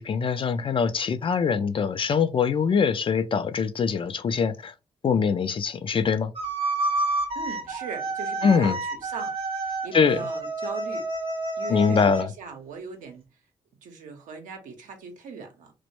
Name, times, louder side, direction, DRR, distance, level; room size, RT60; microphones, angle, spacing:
voice 1, 0.0-4.7 5.0-6.3 8.4-8.8 9.9-10.2 11.7-12.3, left 6 dB, 40° left, 0.4 m, -23 dB
sound 1, 6.4-12.3, right 2 dB, 45° right, 0.7 m, -29 dB
voice 2, 7.3-9.4 9.6-11.1 11.6-13.2 13.8-15.7, right 5 dB, 80° right, 0.6 m, -39 dB
2.1 x 2.1 x 2.9 m
supercardioid pair, 55°, 13 cm